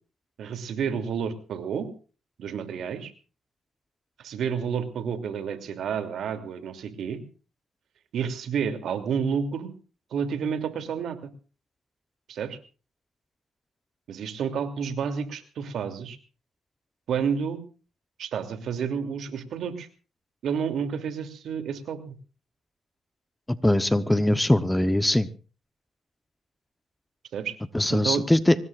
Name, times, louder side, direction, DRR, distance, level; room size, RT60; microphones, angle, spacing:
voice 1, 0.4-1.9 2.4-3.1 4.2-7.2 8.1-9.7 10.1-11.2 12.3-12.6 14.1-16.2 17.1-17.6 18.2-19.9 20.4-22.2 27.3-27.6 27.9-28.3, right 7 dB, 70° right, 9 dB, 2.9 m, -30 dB
voice 2, 23.6-25.3 27.7-28.5, left 1 dB, 10° left, 12 dB, 1.0 m, -21 dB
25.0 x 20.0 x 2.5 m, 0.36 s
cardioid pair, 90°, 0 cm